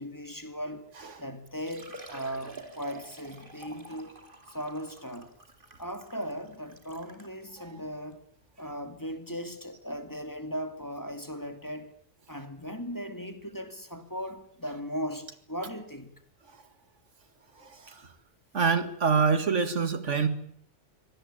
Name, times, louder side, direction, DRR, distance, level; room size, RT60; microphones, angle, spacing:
voice 1, 0.0-0.9 1.2-4.2 4.5-5.3 5.8-8.2 8.6-11.9 12.3-16.2, equal, 15° left, 2.4 m, -38 dB
Liquid, 1.0-1.1 1.5-7.3 8.0-8.1 8.6-8.7 10.3-10.4 10.6-10.7, right 2 dB, 45° right, 3.0 m, -48 dB
voice 2, 18.5-20.3, right 5 dB, 85° right, 2.3 m, -25 dB
24.5 x 18.0 x 9.0 m
omnidirectional pair, 1.2 m